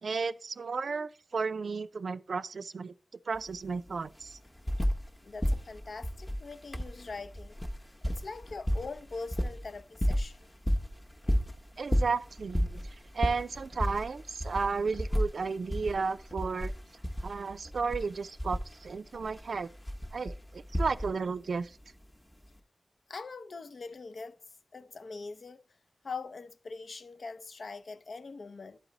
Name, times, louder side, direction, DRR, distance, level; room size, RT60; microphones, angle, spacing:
voice 1, 0.0-2.9 3.3-4.4 11.8-16.7 17.2-19.7 20.1-21.8, right 4 dB, 85° right, 0.4 m, -33 dB
sound 1, 3.3-3.4 3.7-5.1 5.4-21.4 22.4-22.5, equal, 15° left, 0.8 m, -33 dB
voice 2, 5.2-7.6 8.1-10.5 19.1-19.3 23.1-24.4 24.7-25.6 26.0-28.8, left 4 dB, 70° left, 0.5 m, -42 dB
11.5 x 4.1 x 3.9 m
wide cardioid pair, 105°, 0 cm